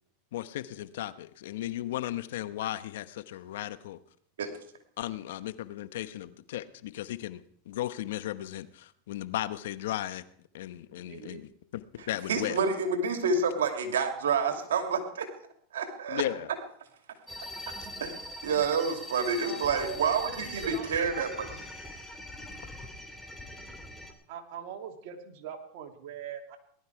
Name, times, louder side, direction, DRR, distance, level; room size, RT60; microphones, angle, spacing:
voice 1, 0.3-4.0 5.0-10.2 10.5-12.6 16.1-16.5, left 13 dB, 75° left, 14 dB, 1.0 m, -36 dB
voice 2, 11.0-11.5 18.6-19.0 19.4-20.9 21.1-21.2 24.3-26.6, right 8 dB, 60° right, 3 dB, 2.8 m, -42 dB
voice 3, 12.3-15.3 15.7-16.2 18.0-18.1 18.4-21.5, right 5 dB, 90° right, 5 dB, 2.6 m, -28 dB
sound 1, 17.3-24.1, left 1 dB, 5° left, 2.5 m, -42 dB
19.0 x 12.0 x 4.7 m, 0.63 s
hypercardioid pair, 115°, 0 cm